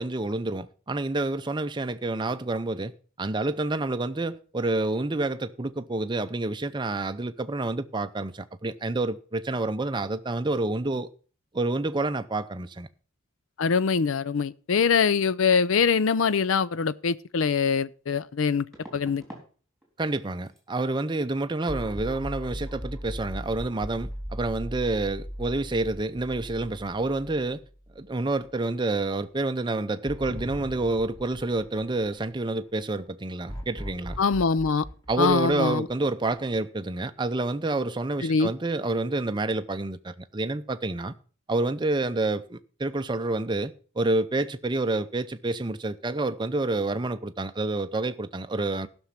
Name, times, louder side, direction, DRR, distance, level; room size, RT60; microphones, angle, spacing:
voice 1, 0.0-2.9 3.2-11.1 11.5-12.9 20.0-27.6 28.0-34.2 35.1-41.1 41.5-48.9, right 2 dB, 20° right, 0.6 m, -28 dB
voice 2, 13.6-18.6 18.9-19.2 34.2-34.8 35.2-35.9 38.2-38.5, left 5 dB, 70° left, 0.5 m, -23 dB
sound 1, 17.2-17.3 18.7-19.5 19.8-20.2 20.5-20.6 23.6-23.7 23.9-24.2 24.5-24.6, right 1 dB, ahead, 3.6 m, -47 dB
sound 2, 21.7-28.0 28.4-28.5 30.0-32.5 33.5-36.2, equal, 15° left, 2.4 m, -38 dB
15.0 x 6.2 x 5.7 m
head